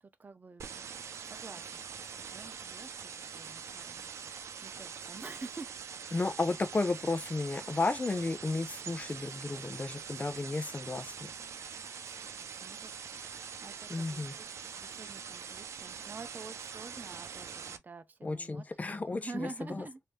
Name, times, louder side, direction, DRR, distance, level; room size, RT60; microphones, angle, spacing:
voice 1, 0.0-0.9 1.3-5.7 12.1-13.0 13.6-20.0, right 3 dB, 40° right, 0.6 m, -48 dB
sound 1, 0.6-17.8, right 7 dB, 80° right, 0.6 m, -44 dB
voice 2, 6.1-11.1 13.9-14.3 18.2-19.8, left 3 dB, 30° left, 0.6 m, -33 dB
3.1 x 2.7 x 3.2 m
cardioid pair, 65°, 5 cm